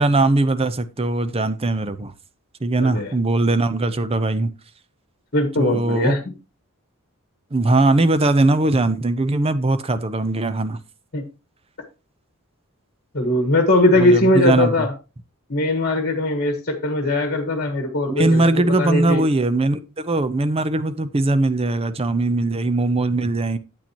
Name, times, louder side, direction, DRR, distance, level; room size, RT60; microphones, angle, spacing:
voice 1, 0.0-2.1 2.6-4.5 5.6-6.2 7.5-10.8 13.9-14.9 18.1-23.6, right 2 dB, 25° right, 0.6 m, -20 dB
voice 2, 2.8-3.1 5.3-6.2 11.1-11.2 13.1-14.9 15.5-19.2, left 2 dB, 45° left, 1.5 m, -20 dB
8.8 x 8.7 x 2.9 m
head